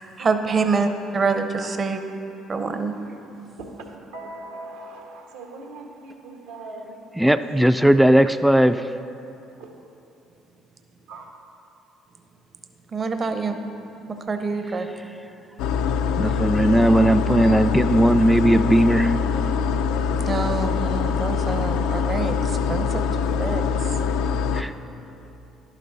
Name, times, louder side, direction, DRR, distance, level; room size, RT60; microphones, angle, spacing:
voice 1, 0.0-2.0 2.5-2.9 12.9-13.6 14.1-14.9 20.3-23.0 23.4-23.6, right 4 dB, 40° right, 7 dB, 0.7 m, -26 dB
voice 2, 4.1-7.0 7.5-7.7 9.6-9.7 11.1-11.2 20.7-20.8, right 2 dB, 90° right, 0 dB, 1.3 m, -40 dB
voice 3, 7.2-8.9 16.2-19.1 24.5-24.7, right 1 dB, 5° right, 10 dB, 0.3 m, -17 dB
sound 1, 15.6-24.6, left 6 dB, 75° left, 0.4 m, -24 dB
11.5 x 9.2 x 4.0 m, 2.8 s
hypercardioid pair, 60°, 0 cm